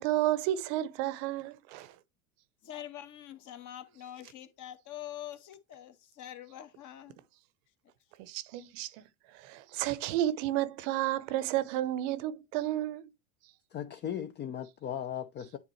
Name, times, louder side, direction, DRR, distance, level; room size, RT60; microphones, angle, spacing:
voice 1, 0.0-2.0 8.2-9.0 9.3-13.1, right 13 dB, 55° right, 0.8 m, -32 dB
voice 2, 2.6-7.2, left 11 dB, 40° left, 1.3 m, -45 dB
voice 3, 13.7-15.6, left 9 dB, 25° left, 0.5 m, -37 dB
9.2 x 4.0 x 3.1 m
hypercardioid pair, 100°, 45 cm